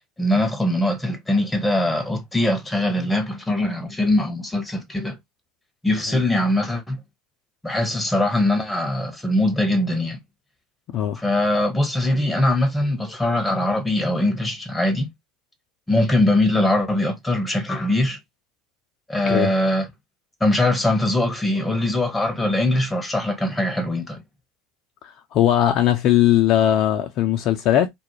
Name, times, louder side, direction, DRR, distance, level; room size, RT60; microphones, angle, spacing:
voice 1, 0.0-5.2 5.8-7.0 7.6-10.2 11.2-15.1 15.9-18.2 19.1-19.9 20.4-24.2, left 1 dB, 10° left, 0.8 m, -22 dB
voice 2, 25.0-27.9, left 11 dB, 50° left, 0.4 m, -19 dB
2.4 x 2.1 x 3.0 m
hypercardioid pair, 75°, 0 cm